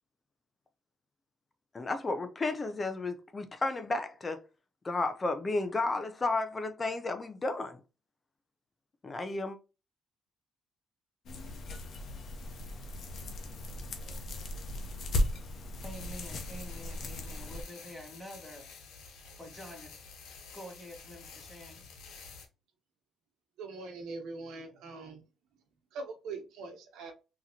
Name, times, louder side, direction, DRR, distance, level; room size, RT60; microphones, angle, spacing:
voice 1, 1.7-4.4 4.8-7.8 9.0-9.6, left 3 dB, 30° left, 0.6 m, -32 dB
sound 1, 11.3-17.6, left 1 dB, 60° left, 0.9 m, -36 dB
voice 2, 15.8-18.7 19.4-19.9 20.5-21.8, equal, ahead, 1.6 m, -47 dB
sound 2, 15.9-22.5, left 5 dB, 85° left, 1.1 m, -50 dB
voice 3, 23.6-25.2 25.9-27.1, right 3 dB, 85° right, 1.0 m, -42 dB
3.6 x 3.0 x 2.8 m
cardioid pair, 90°, 0 cm